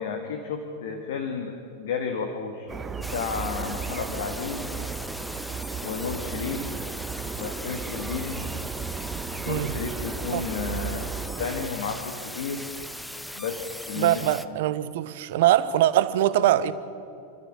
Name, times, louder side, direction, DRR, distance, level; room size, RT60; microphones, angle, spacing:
voice 1, 0.0-2.7 3.1-4.6 5.8-6.6 7.4-8.4 9.4-12.6 13.4-14.3, left 5 dB, 55° left, 1.9 m, -32 dB
sound 1, 2.7-11.7, right 5 dB, 15° right, 1.2 m, -35 dB
sound 2, 3.0-14.5, left 1 dB, 5° left, 0.8 m, -39 dB
voice 2, 9.5-9.8 10.3-10.4 14.0-16.7, right 13 dB, 55° right, 1.0 m, -22 dB
28.5 x 13.5 x 8.7 m
figure-of-eight pair, 90°, 0 cm